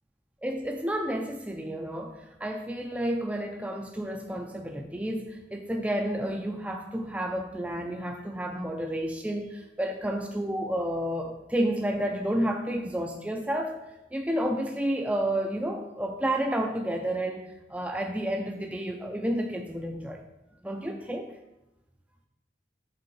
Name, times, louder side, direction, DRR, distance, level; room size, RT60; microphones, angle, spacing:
voice 1, 0.4-13.8 14.1-20.2 20.6-21.3, right 1 dB, 10° right, 3 dB, 0.5 m, -30 dB
6.8 x 3.6 x 5.1 m, 0.92 s
head